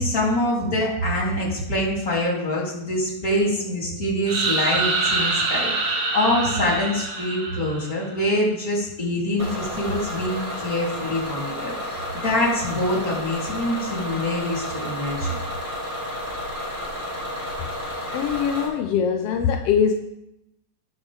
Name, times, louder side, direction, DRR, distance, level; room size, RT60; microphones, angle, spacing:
voice 1, 0.0-15.4, left 1 dB, 30° left, -5 dB, 3.8 m, -25 dB
sound 1, 4.3-8.1, right 3 dB, 70° right, 3.5 m, -25 dB
Bus / Engine, 9.4-18.7, equal, 25° right, 5.1 m, -31 dB
voice 2, 18.1-19.9, left 7 dB, 75° left, 5 dB, 1.4 m, -22 dB
18.5 x 7.3 x 3.5 m, 0.84 s
omnidirectional pair, 3.3 m